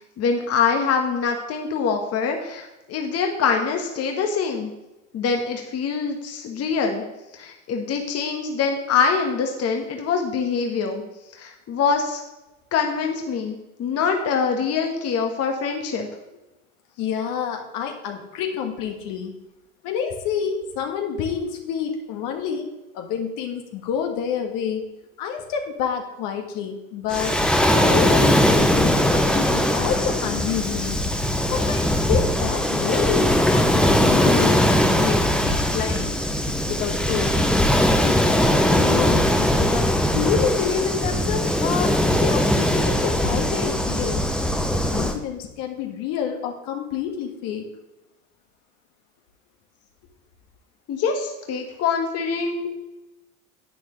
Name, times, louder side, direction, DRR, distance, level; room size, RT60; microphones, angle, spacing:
voice 1, 0.2-4.7 5.1-7.0 7.4-11.0 11.4-12.2 12.7-16.1 50.9-52.7, left 5 dB, 35° left, 3 dB, 1.5 m, -24 dB
voice 2, 17.0-19.3 19.8-22.7 22.9-24.9 25.2-27.4 27.7-31.0 31.5-36.2 36.7-37.3 38.0-41.9 42.2-44.2 44.7-47.7, left 7 dB, 55° left, 3 dB, 1.6 m, -28 dB
Waves surf, 27.1-45.2, left 1 dB, ahead, 0.9 m, -20 dB
10.5 x 8.9 x 3.2 m, 1.0 s
hypercardioid pair, 85°, 41 cm